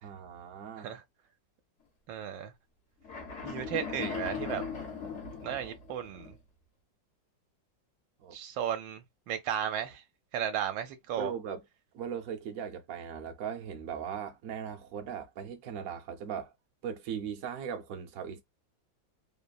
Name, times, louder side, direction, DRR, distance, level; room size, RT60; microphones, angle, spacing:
voice 1, 0.0-0.9 8.2-8.4 11.2-11.6 11.9-16.5 16.8-18.4, right 7 dB, 60° right, 0.9 m, -39 dB
voice 2, 2.1-2.5 3.4-4.6 5.4-6.3 8.3-10.0 10.3-11.3, right 9 dB, 80° right, 1.3 m, -34 dB
sound 1, 3.0-6.4, left 6 dB, 55° left, 0.8 m, -38 dB
3.2 x 2.1 x 2.3 m
omnidirectional pair, 2.1 m